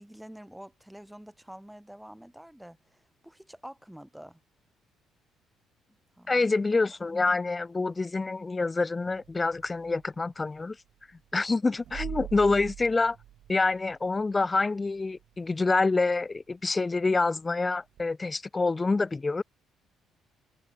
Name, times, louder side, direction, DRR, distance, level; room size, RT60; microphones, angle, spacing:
voice 1, 0.0-4.4 6.2-6.5, equal, 5° right, 3.1 m, -47 dB
voice 2, 6.3-10.8 11.3-13.2 13.5-19.4, left 3 dB, 25° left, 0.7 m, -27 dB
sound 1, 9.0-10.3 11.8-14.4 14.9-15.0 18.0-18.1, right 12 dB, 70° right, 3.6 m, -42 dB
supercardioid pair, 60°, 0 cm